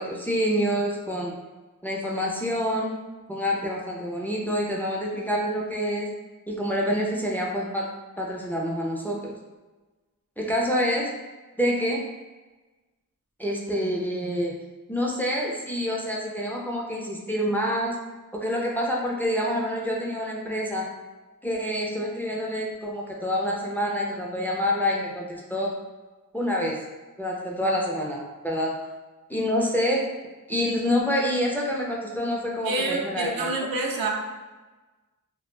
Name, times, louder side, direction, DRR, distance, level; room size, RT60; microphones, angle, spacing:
voice 1, 0.0-1.3 1.8-2.9 3.3-6.1 6.5-7.9 8.2-9.3 10.4-11.1 11.6-12.0 13.4-14.5 14.9-18.0 18.3-20.9 21.4-25.7 26.3-26.8 27.2-28.7 29.3-30.0 30.5-33.5, equal, 5° left, -3 dB, 0.4 m, -27 dB
voice 2, 32.6-34.1, right 2 dB, 85° right, 0 dB, 0.5 m, -27 dB
2.3 x 2.1 x 3.1 m, 1.2 s
wide cardioid pair, 85°, 35 cm